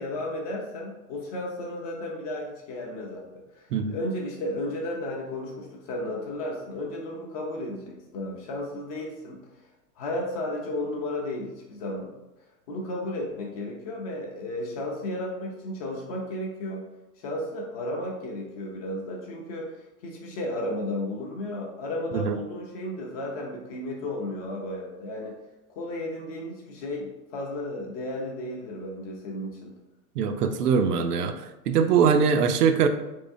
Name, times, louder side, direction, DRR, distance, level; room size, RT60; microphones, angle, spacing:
voice 1, 0.0-9.4 10.0-12.2 12.7-16.9 17.2-25.3 25.7-29.7, left 1 dB, 25° left, -1 dB, 0.4 m, -33 dB
voice 2, 30.2-31.3 31.7-32.9, right 6 dB, 80° right, 7 dB, 0.6 m, -22 dB
3.5 x 3.3 x 2.6 m, 0.98 s
hypercardioid pair, 130°, 46 cm